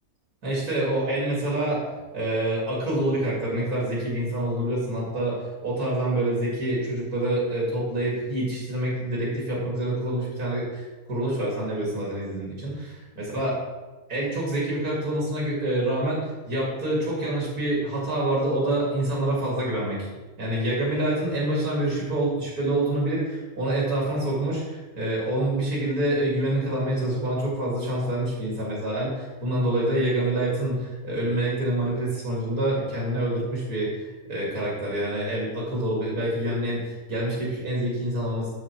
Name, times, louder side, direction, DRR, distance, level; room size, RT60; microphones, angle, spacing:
voice 1, 0.4-1.8 2.1-13.6 14.1-20.1 20.4-38.5, right 1 dB, 85° right, -4 dB, 2.8 m, -26 dB
12.5 x 4.6 x 4.5 m, 1.2 s
omnidirectional pair, 1.6 m